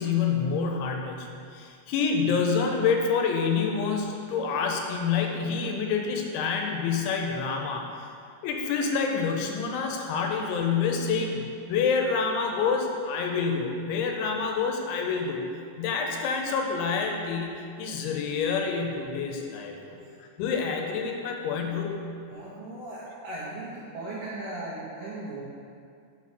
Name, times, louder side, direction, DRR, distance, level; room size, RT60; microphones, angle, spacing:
voice 1, 0.0-8.1 8.4-15.5 15.8-22.1, left 5 dB, 90° left, 2 dB, 3.0 m, -27 dB
voice 2, 22.3-25.4, right 2 dB, 85° right, -8 dB, 1.8 m, -37 dB
6.6 x 4.2 x 6.0 m, 2.3 s
omnidirectional pair, 5.3 m